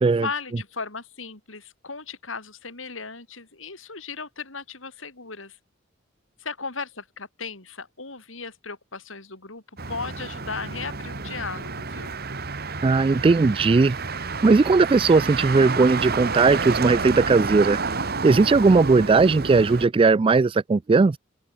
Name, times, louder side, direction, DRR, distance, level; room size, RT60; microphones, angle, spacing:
voice 1, 0.2-5.6 6.4-9.6 9.9-12.2, left 4 dB, 80° left, 5.3 m, -36 dB
Motor vehicle (road), 9.8-19.9, right 4 dB, 55° right, 2.2 m, -30 dB
voice 2, 12.8-14.0 14.4-17.8 18.2-21.2, right 4 dB, 25° right, 0.3 m, -18 dB
open air
head